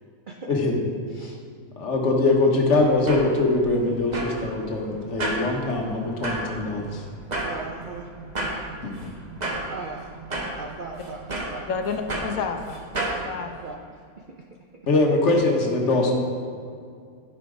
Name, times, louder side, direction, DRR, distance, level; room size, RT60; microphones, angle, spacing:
voice 1, 1.8-7.0 8.8-8.9 14.9-16.1, left 2 dB, 55° left, 1 dB, 1.4 m, -22 dB
sound 1, 2.8-13.2, right 2 dB, 30° right, 1.2 m, -33 dB
voice 2, 7.4-8.1 9.7-10.1 10.6-11.6 13.4-13.8 14.2-14.3, right 4 dB, 55° right, 0 dB, 0.5 m, -38 dB
voice 3, 11.7-13.8, left 5 dB, 75° left, 6 dB, 1.1 m, -31 dB
10.5 x 5.0 x 5.0 m, 2.3 s
omnidirectional pair, 1.5 m